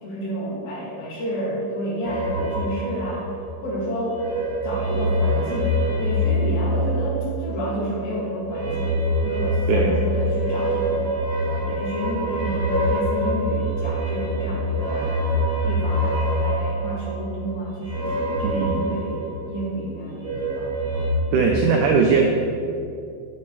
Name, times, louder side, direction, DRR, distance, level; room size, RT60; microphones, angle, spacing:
voice 1, 0.0-3.3 3.6-4.2 4.6-5.7 6.0-8.9 9.2-11.1 11.5-15.1 15.6-20.8, equal, 65° left, -6 dB, 4.1 m, -30 dB
sound 1, 2.0-3.7 4.0-7.5 8.4-19.7 20.1-21.1, equal, 50° right, 1.3 m, -25 dB
voice 2, 18.4-18.9 21.3-22.3, right 5 dB, 85° right, 1 dB, 1.8 m, -19 dB
17.0 x 6.2 x 3.3 m, 2.5 s
omnidirectional pair, 4.5 m